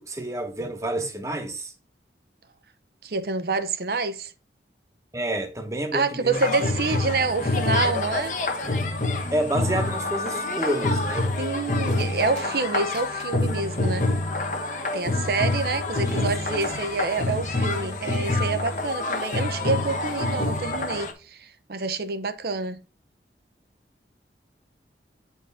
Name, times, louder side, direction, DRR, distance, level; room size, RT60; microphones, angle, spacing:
voice 1, 0.0-1.7 5.1-6.5 9.3-11.3 16.0-16.3, right 1 dB, 15° right, 1.0 m, -29 dB
voice 2, 3.0-4.3 5.9-8.4 11.4-14.1 14.9-22.8, right 4 dB, 60° right, 0.7 m, -27 dB
sound 1, 6.3-21.1, left 2 dB, 45° left, 1.1 m, -27 dB
8.8 x 4.6 x 3.4 m
head